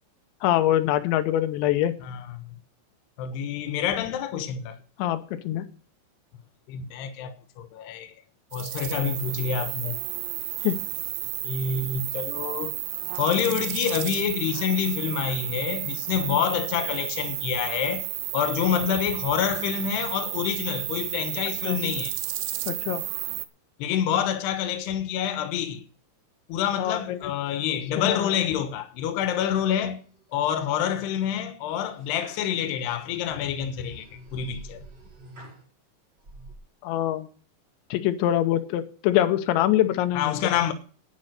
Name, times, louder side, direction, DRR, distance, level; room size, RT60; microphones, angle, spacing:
voice 1, 0.4-1.9 5.0-5.7 10.6-10.8 21.6-21.8 22.7-23.0 26.8-27.3 28.0-28.4 36.8-37.3 37.9-40.5, left 12 dB, 90° left, 3.2 m, -24 dB
voice 2, 3.2-4.8 6.7-8.1 8.5-9.9 11.4-12.7 13.1-18.0 18.3-22.2 23.8-25.8 26.5-30.0 30.3-34.1 34.3-34.8 40.1-40.7, left 8 dB, 75° left, 3.1 m, -27 dB
sound 1, 8.5-23.5, right 16 dB, 85° right, 3.2 m, -32 dB
sound 2, 29.5-30.2 30.7-31.1 31.7-35.7 36.2-36.5, right 1 dB, 30° right, 2.9 m, -48 dB
10.5 x 9.8 x 6.5 m
omnidirectional pair, 5.1 m